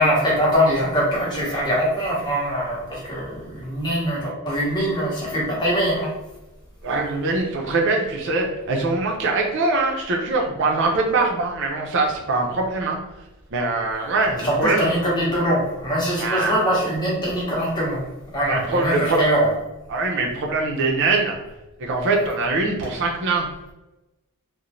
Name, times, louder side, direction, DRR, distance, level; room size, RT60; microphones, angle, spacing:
voice 1, 0.0-6.1 14.3-18.0 18.3-19.5, equal, 20° left, -6 dB, 0.9 m, -22 dB
voice 2, 6.8-13.0 13.5-14.9 16.2-16.5 18.5-19.2 19.9-21.4 21.8-23.4, right 3 dB, 60° right, 1 dB, 0.4 m, -22 dB
2.5 x 2.0 x 2.9 m, 1.0 s
head